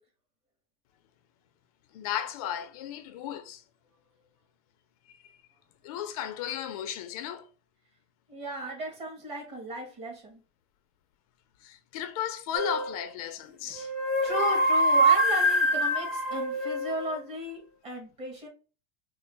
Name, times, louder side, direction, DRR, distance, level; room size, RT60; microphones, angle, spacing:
voice 1, 1.9-3.6 5.8-7.5 11.6-13.9, left 10 dB, 60° left, 0.5 m, -34 dB
voice 2, 8.3-10.4 13.6-18.5, right 1 dB, 30° right, 1.4 m, -36 dB
sound 1, 12.5-13.0 13.7-17.2, right 1 dB, 5° right, 0.3 m, -25 dB
3.8 x 2.0 x 3.2 m
supercardioid pair, 175°, 21 cm